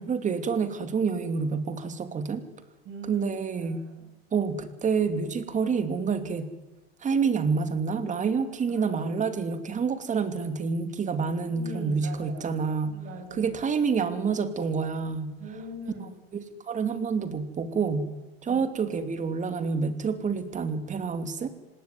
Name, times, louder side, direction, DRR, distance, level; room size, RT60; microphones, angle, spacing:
voice 1, 0.1-2.4 3.0-3.8 4.3-6.5 7.0-13.0 13.3-15.3 16.3-18.1 18.4-21.5, right 5 dB, 25° right, 10 dB, 2.8 m, -28 dB
voice 2, 2.8-3.3 3.6-4.1 8.7-9.0 11.5-12.5 12.9-13.5 15.4-16.1 18.5-18.6, right 1 dB, 45° right, 5 dB, 8.0 m, -41 dB
26.5 x 19.0 x 9.7 m, 1.1 s
supercardioid pair, 125°, 31 cm